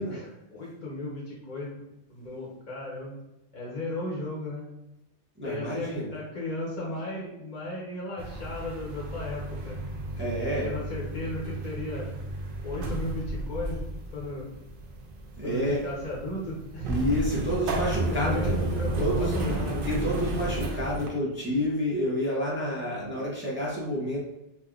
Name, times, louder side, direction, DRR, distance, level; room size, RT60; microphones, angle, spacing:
voice 1, 0.1-1.8 2.1-3.2 3.5-4.6 5.4-9.8 10.6-12.1 12.6-13.8 14.1-14.5 15.4-16.9 18.1-19.9, left 1 dB, 45° left, -5 dB, 0.7 m, -35 dB
voice 2, 5.4-6.1 10.2-10.7 15.4-15.8 16.9-18.6 19.0-19.3 19.8-24.2, equal, 15° right, -6 dB, 0.6 m, -29 dB
sound 1, 8.2-21.1, right 1 dB, 65° right, 0.7 m, -32 dB
3.4 x 2.5 x 2.3 m, 0.91 s
omnidirectional pair, 1.1 m